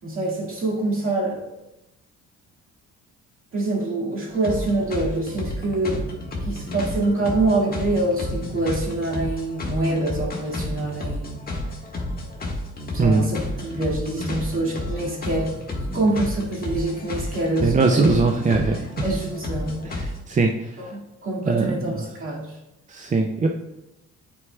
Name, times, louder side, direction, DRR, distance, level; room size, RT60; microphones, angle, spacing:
voice 1, 0.0-1.4 3.5-6.1 6.4-11.3 12.9-15.5 15.9-18.1 19.0-19.9 20.8-22.5, right 2 dB, 45° right, -4 dB, 2.0 m, -25 dB
sound 1, 4.3-20.2, left 1 dB, 30° left, 1.5 m, -31 dB
voice 2, 17.6-18.8 20.3-20.5 21.5-22.0 22.9-23.5, right 3 dB, 25° right, 3 dB, 0.4 m, -20 dB
9.4 x 4.6 x 2.3 m, 0.94 s
cardioid pair, 90°, 30 cm